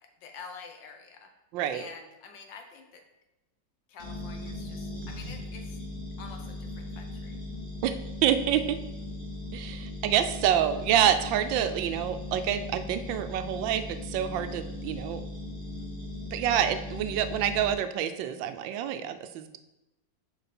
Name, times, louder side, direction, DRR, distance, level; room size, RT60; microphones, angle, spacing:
voice 1, 0.2-1.3 1.7-3.0 3.9-5.8 6.2-7.4, left 5 dB, 80° left, 4 dB, 1.7 m, -47 dB
voice 2, 1.5-1.9 7.8-8.8 9.5-15.2 16.3-19.6, right 10 dB, 90° right, 10 dB, 1.3 m, -27 dB
sound 1, 4.0-17.7, left 2 dB, 35° left, 3.0 m, -38 dB
6.7 x 5.4 x 4.3 m, 0.97 s
omnidirectional pair, 2.0 m